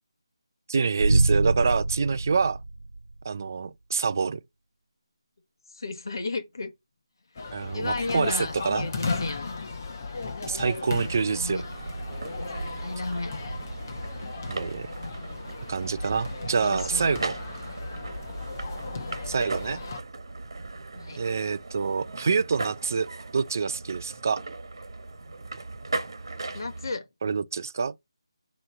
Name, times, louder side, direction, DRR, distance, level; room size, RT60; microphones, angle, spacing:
voice 1, 0.7-2.6 3.2-4.4 7.5-8.9 10.4-11.6 14.5-14.9 15.7-17.4 19.3-19.8 21.2-23.1 23.3-24.4 27.2-27.9, right 5 dB, 35° right, 0.5 m, -26 dB
sound 1, 1.0-3.3, right 2 dB, 85° right, 0.8 m, -25 dB
voice 2, 5.7-6.7 7.7-9.5 11.3-11.6 12.5-13.3 14.8-15.4 16.5-17.1 18.9-19.3 20.9-21.2 26.5-27.0, left 3 dB, 45° left, 1.3 m, -34 dB
sound 2, 7.4-20.0, left 4 dB, 30° left, 1.1 m, -36 dB
sound 3, 11.0-26.9, right 3 dB, 50° right, 1.4 m, -37 dB
7.7 x 3.1 x 5.8 m
figure-of-eight pair, 175°, 3 cm